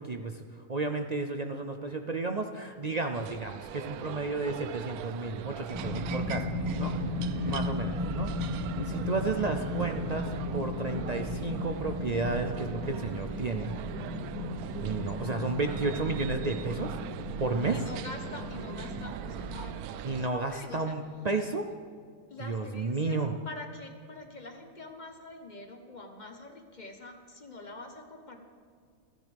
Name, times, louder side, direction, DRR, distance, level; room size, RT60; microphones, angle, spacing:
voice 1, 0.0-6.5 6.8-6.9 7.5-8.3 8.7-13.7 14.8-16.9 17.4-17.8 20.0-21.7 22.4-23.3, right 3 dB, 55° right, 5 dB, 0.4 m, -32 dB
sound 1, 3.1-20.3, right 11 dB, 85° right, 1.1 m, -42 dB
sound 2, 5.7-19.6, left 1 dB, 10° right, 1.8 m, -35 dB
voice 2, 7.3-8.0 17.7-21.0 22.3-28.4, left 2 dB, 30° left, 4 dB, 1.3 m, -45 dB
29.0 x 10.5 x 3.5 m, 2.1 s
omnidirectional pair, 1.5 m